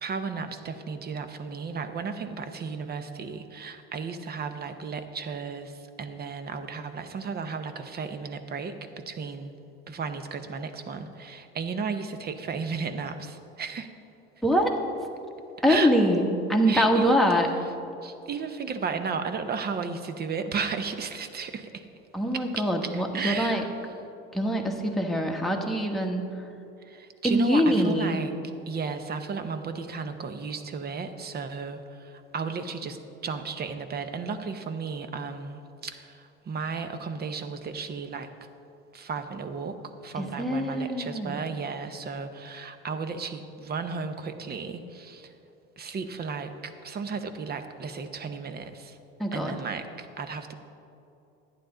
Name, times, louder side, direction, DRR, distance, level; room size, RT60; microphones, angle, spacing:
voice 1, 0.0-9.5 9.9-13.9 15.7-15.9 16.7-17.7 18.0-21.9 22.3-23.7 26.8-28.3 28.7-38.3 38.9-39.8 40.0-45.3 45.8-49.0 49.3-50.5, right 5 dB, 30° right, 9 dB, 0.8 m, -34 dB
voice 2, 15.6-17.5 22.1-23.6 24.3-26.3 27.2-28.2 40.2-41.4 49.2-49.6, equal, ahead, 1 dB, 1.2 m, -24 dB
11.5 x 9.2 x 3.9 m, 2.7 s
supercardioid pair, 95°, 31 cm